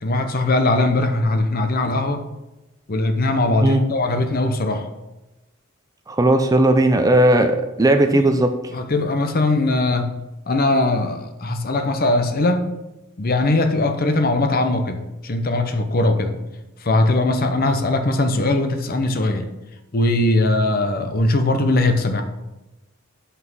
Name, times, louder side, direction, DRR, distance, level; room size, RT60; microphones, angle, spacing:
voice 1, 0.0-2.2 2.9-4.9 8.1-8.2 8.7-10.1 10.5-12.6 13.2-16.4 16.8-19.5 19.9-22.2, left 2 dB, 45° left, 7 dB, 0.8 m, -20 dB
voice 2, 6.1-8.5, right 1 dB, 15° right, 7 dB, 0.5 m, -16 dB
5.8 x 5.7 x 6.1 m, 0.99 s
head